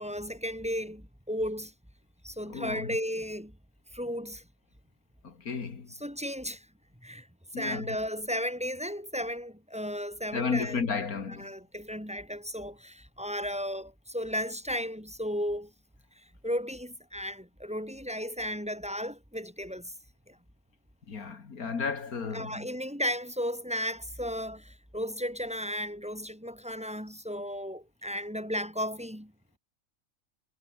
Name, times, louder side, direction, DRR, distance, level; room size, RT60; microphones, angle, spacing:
voice 1, 0.0-1.7 2.2-3.5 3.9-4.4 5.9-6.7 7.0-7.3 7.5-10.8 11.4-15.7 16.4-19.9 20.3-20.4 22.3-29.3, equal, 5° right, 4.4 m, -34 dB
voice 2, 2.5-2.9 5.2-5.9 7.5-8.0 10.3-11.5 21.1-22.6, left 5 dB, 85° left, 2.6 m, -33 dB
omnidirectional pair, 1.5 m